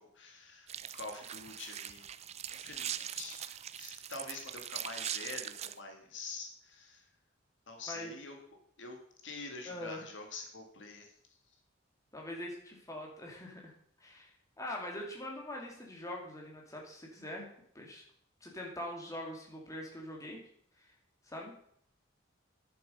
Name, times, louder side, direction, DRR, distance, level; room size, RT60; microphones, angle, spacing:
voice 1, 0.0-2.1 2.5-7.1 7.7-8.4 8.8-9.0 9.2-11.1, left 3 dB, 65° left, 3 dB, 2.0 m, -46 dB
sound 1, 0.7-5.7, right 10 dB, 35° right, 0.4 m, -41 dB
voice 2, 9.7-10.0 12.1-13.7 14.0-14.3 14.6-18.0 18.4-20.4 20.8-20.9 21.3-21.5, left 1 dB, 15° left, -1 dB, 2.4 m, -43 dB
10.5 x 7.2 x 5.4 m, 0.65 s
head